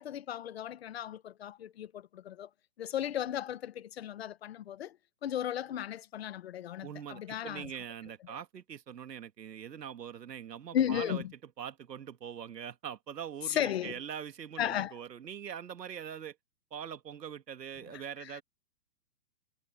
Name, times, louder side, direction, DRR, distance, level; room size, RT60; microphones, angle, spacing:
voice 1, 0.0-2.5 2.8-5.0 5.2-7.7 8.3-8.4 10.7-11.3 13.5-14.0 14.6-15.0 17.9-18.4, left 10 dB, 40° left, 1.1 m, -35 dB
voice 2, 6.8-11.2 11.6-16.4 16.7-18.4, right 8 dB, 85° right, 2.1 m, -43 dB
hypercardioid pair, 165°, 48 cm